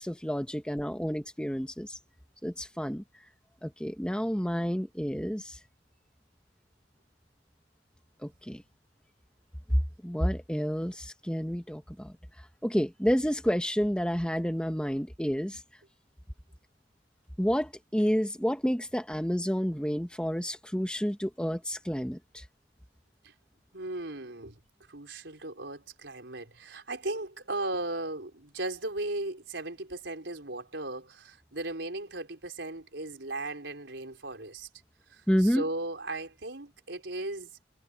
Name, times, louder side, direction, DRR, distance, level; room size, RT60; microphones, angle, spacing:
voice 1, 0.0-2.0 2.4-3.0 3.6-5.6 8.2-8.6 10.0-12.1 12.6-15.6 17.4-22.4 35.3-35.6, equal, 5° left, 1.6 m, -30 dB
voice 2, 23.7-24.6 24.9-34.7 35.1-37.5, right 2 dB, 75° right, 4.4 m, -37 dB
head